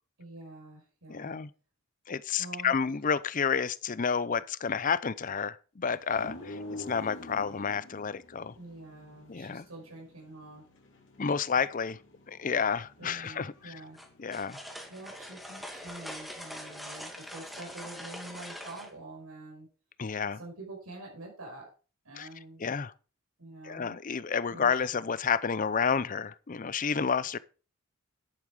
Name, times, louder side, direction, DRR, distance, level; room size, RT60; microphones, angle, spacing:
voice 1, 0.2-1.4 2.4-2.8 8.6-10.6 13.0-14.0 14.9-19.7 20.3-21.7 22.0-22.6 23.4-24.0 24.5-24.8, right 2 dB, 85° right, 5.4 m, -46 dB
voice 2, 1.1-1.5 2.1-8.6 9.3-9.6 11.2-12.0 12.3-13.8 14.2-14.6 20.0-20.4 22.2-22.3 22.6-22.9 23.6-27.4, left 6 dB, 40° left, 0.5 m, -30 dB
sound 1, 6.1-18.9, left 1 dB, 60° left, 2.8 m, -50 dB
sound 2, 14.0-18.9, equal, ahead, 2.1 m, -43 dB
11.0 x 8.6 x 4.9 m
head